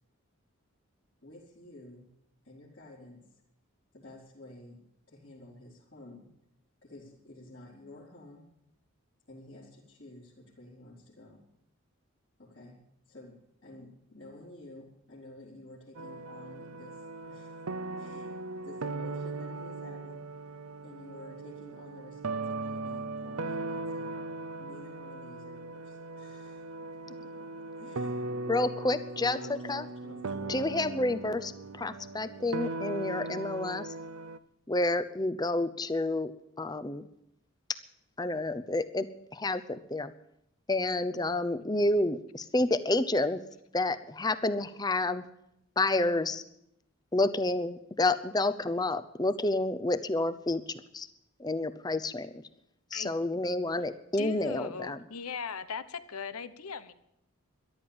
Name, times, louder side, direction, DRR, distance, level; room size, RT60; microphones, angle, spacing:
voice 1, 1.2-2.1 2.4-3.4 3.9-4.8 5.1-6.3 6.8-8.5 9.3-11.4 12.4-12.8 13.1-17.5 18.0-26.6 27.1-28.3 29.1-30.5, left 1 dB, 55° left, -6 dB, 3.9 m, -51 dB
sound 1, 15.9-34.4, right 3 dB, 85° right, 0.7 m, -38 dB
voice 2, 28.5-29.8 30.5-33.9 34.7-36.3 36.6-37.1 38.2-40.1 40.7-43.4 43.7-45.2 45.8-46.4 47.1-50.6 50.9-51.1 51.4-52.4 52.9-55.0, left 2 dB, 20° left, 13 dB, 0.7 m, -29 dB
voice 3, 54.2-56.9, left 5 dB, 90° left, 13 dB, 1.0 m, -39 dB
13.5 x 11.5 x 8.8 m, 0.81 s
head